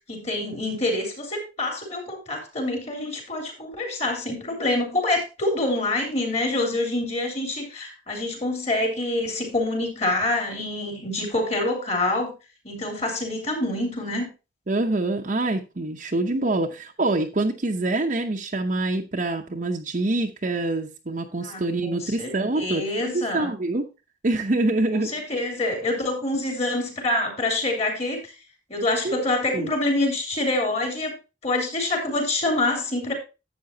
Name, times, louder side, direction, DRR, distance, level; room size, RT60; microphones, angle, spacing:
voice 1, 0.1-12.3 12.6-14.3 21.4-23.5 24.9-28.3 28.7-31.1 31.4-33.1, left 2 dB, 35° left, 3 dB, 3.2 m, -26 dB
voice 2, 14.7-23.9 24.2-25.1 29.0-29.2 29.5-29.7, right 2 dB, 45° right, 1 dB, 0.8 m, -25 dB
11.5 x 8.0 x 2.7 m, 0.28 s
head